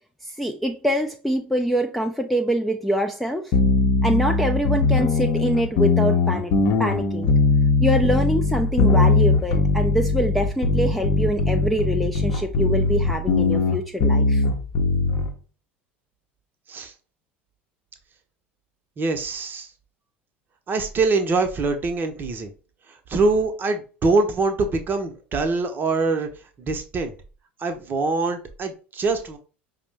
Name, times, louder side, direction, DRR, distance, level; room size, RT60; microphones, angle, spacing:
voice 1, 0.4-3.5 4.0-6.5 6.8-7.3 7.8-14.4, equal, ahead, 0.4 m, -24 dB
sound 1, 3.5-15.3, left 3 dB, 50° left, 0.7 m, -20 dB
voice 2, 19.0-19.7 20.7-22.5 23.1-26.3 26.6-27.1 27.6-29.4, right 3 dB, 30° right, 0.7 m, -24 dB
5.0 x 2.1 x 3.3 m
figure-of-eight pair, 70°, 6 cm